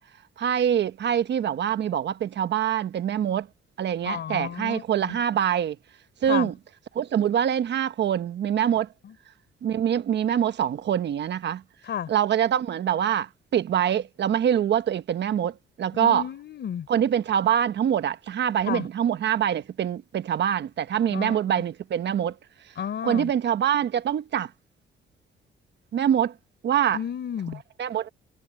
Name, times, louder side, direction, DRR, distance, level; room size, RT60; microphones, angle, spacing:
voice 1, 0.4-3.5 3.8-5.8 6.2-6.5 6.9-8.9 9.6-11.6 12.1-16.2 16.9-22.3 23.0-24.5 25.9-26.3 26.6-27.0 27.8-28.1, right 9 dB, 60° right, 1.2 m, -24 dB
voice 2, 4.0-5.2 6.3-6.5 9.0-9.1 11.9-12.1 15.9-16.9 18.6-18.9 21.1-21.4 22.8-23.3 26.9-27.6, left 9 dB, 60° left, 3.9 m, -32 dB
cardioid pair, 90°, 20 cm